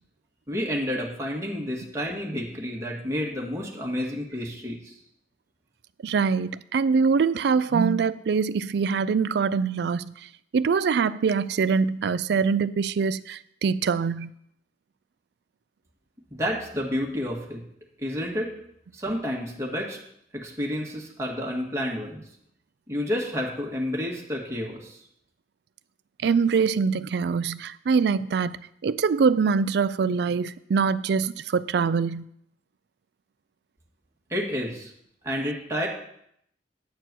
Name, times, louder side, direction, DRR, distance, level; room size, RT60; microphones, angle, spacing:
voice 1, 0.5-4.9 16.3-17.6 18.0-18.5 18.9-20.0 20.3-22.2 22.9-25.0 34.3-34.9 35.2-35.9, equal, 15° right, -3 dB, 1.7 m, -30 dB
voice 2, 6.0-14.3 26.2-28.6 28.8-32.2, right 5 dB, 65° right, 16 dB, 0.4 m, -24 dB
9.4 x 4.5 x 7.5 m, 0.72 s
head